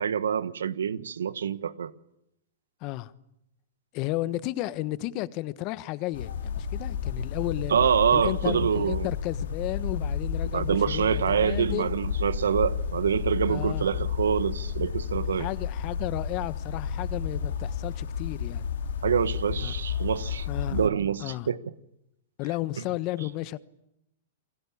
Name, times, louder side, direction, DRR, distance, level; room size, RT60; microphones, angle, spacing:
voice 1, 0.0-1.9 7.7-9.1 10.5-15.5 19.0-21.6, right 7 dB, 85° right, 1.4 m, -26 dB
voice 2, 2.8-3.1 3.9-7.8 8.1-11.9 13.5-13.9 15.3-18.7 19.6-19.7 20.5-20.8 21.2-21.5 22.4-23.6, left 17 dB, 45° left, 1.3 m, -33 dB
sound 1, 6.1-20.9, left 7 dB, 75° left, 3.2 m, -31 dB
29.5 x 23.0 x 8.7 m
hypercardioid pair, 120°, 0 cm